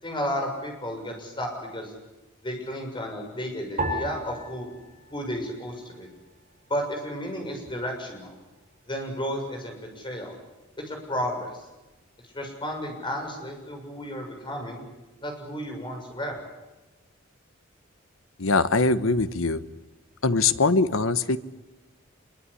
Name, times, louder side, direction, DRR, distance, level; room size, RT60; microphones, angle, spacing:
voice 1, 0.0-1.9 2.4-4.7 5.1-6.1 6.7-8.4 8.9-10.3 10.8-11.5 12.3-14.8 15.2-16.4, equal, 25° left, 3 dB, 6.9 m, -33 dB
sound 1, 3.8-6.3 6.6-7.5 8.1-8.5, right 1 dB, 40° right, 5.8 m, -36 dB
voice 2, 18.4-19.6 20.2-21.4, left 3 dB, 85° left, 13 dB, 1.2 m, -22 dB
25.5 x 23.0 x 10.0 m, 1.1 s
head